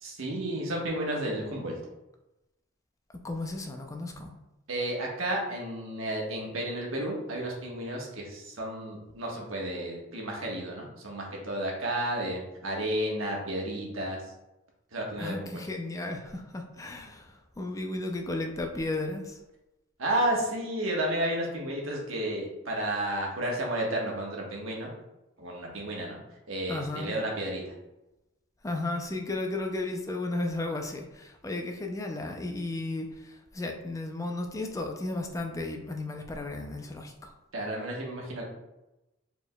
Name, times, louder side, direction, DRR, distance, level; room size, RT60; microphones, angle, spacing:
voice 1, 0.0-1.7 4.7-14.2 14.9-15.5 20.0-24.9 25.4-26.2 26.5-27.7 37.5-38.4, right 1 dB, 90° right, -2 dB, 1.2 m, -32 dB
voice 2, 3.2-4.3 15.2-19.4 26.7-27.1 28.6-37.3, left 2 dB, 15° left, 3 dB, 0.4 m, -34 dB
4.6 x 4.4 x 2.2 m, 0.96 s
head